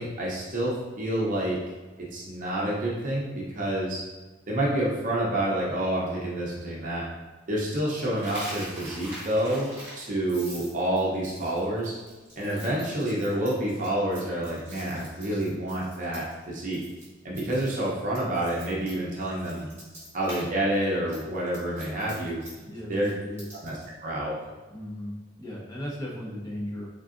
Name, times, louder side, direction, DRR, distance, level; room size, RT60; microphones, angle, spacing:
voice 1, 0.0-1.6 2.1-4.0 4.5-7.0 7.5-11.9 12.4-16.8 17.2-19.7 20.1-22.4 22.9-23.1 23.6-24.4, right 1 dB, 40° right, -5 dB, 0.7 m, -28 dB
Coin (dropping), 8.2-16.4 16.7-17.1 17.3-20.5 20.7-23.9, right 1 dB, 10° right, 1.2 m, -44 dB
voice 2, 22.7-23.5 24.7-25.1 25.4-26.9, left 1 dB, 15° left, -4 dB, 0.8 m, -36 dB
3.8 x 3.6 x 2.5 m, 1.3 s
head